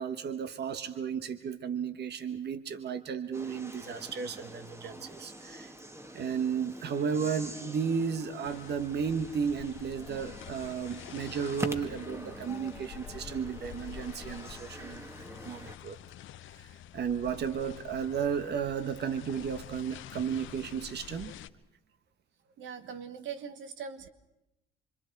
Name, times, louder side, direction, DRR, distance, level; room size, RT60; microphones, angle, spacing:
voice 1, 0.0-5.7 6.1-16.0 16.6-21.3, right 6 dB, 55° right, 11 dB, 1.3 m, -34 dB
sound 1, 3.3-15.8, right 1 dB, 15° right, 1.7 m, -45 dB
sound 2, 8.4-21.5, left 11 dB, 80° left, 0.8 m, -47 dB
voice 2, 22.6-24.1, right 7 dB, 75° right, 10 dB, 1.5 m, -41 dB
26.5 x 25.0 x 4.7 m, 0.90 s
cardioid pair, 90°, 20 cm